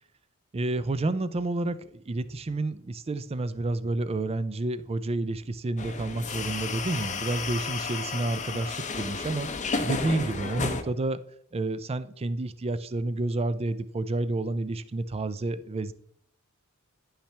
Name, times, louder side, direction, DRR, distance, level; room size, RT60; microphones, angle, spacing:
voice 1, 0.5-9.5 9.8-11.2 11.5-15.9, right 2 dB, 25° right, 0.4 m, -30 dB
sound 1, 5.8-10.8, left 4 dB, 35° left, 0.7 m, -32 dB
10.0 x 5.6 x 3.3 m
head